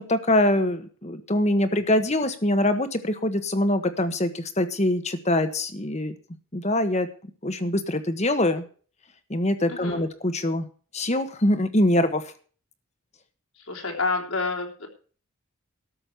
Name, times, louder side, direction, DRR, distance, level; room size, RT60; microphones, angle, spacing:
voice 1, 0.0-6.1 6.5-7.1 7.4-8.6 9.3-10.7 10.9-12.3, left 1 dB, 30° left, 9 dB, 1.4 m, -24 dB
voice 2, 9.7-10.0 13.6-14.9, left 3 dB, 80° left, 1 dB, 3.5 m, -29 dB
13.0 x 6.5 x 7.8 m, 0.41 s
head